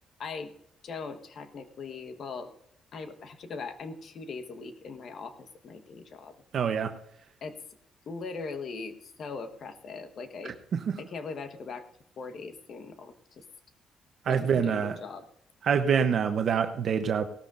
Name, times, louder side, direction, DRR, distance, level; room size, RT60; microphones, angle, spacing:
voice 1, 0.2-0.5 0.8-2.5 2.9-6.3 7.4-7.6 8.1-10.6 11.0-11.9 12.2-13.4 14.3-15.3, left 4 dB, 60° left, 8 dB, 1.3 m, -40 dB
voice 2, 6.5-6.9 10.7-11.0 14.3-15.0 15.6-17.2, right 7 dB, 60° right, 7 dB, 0.8 m, -26 dB
17.5 x 13.0 x 2.6 m, 0.70 s
cardioid pair, 90°, 0 cm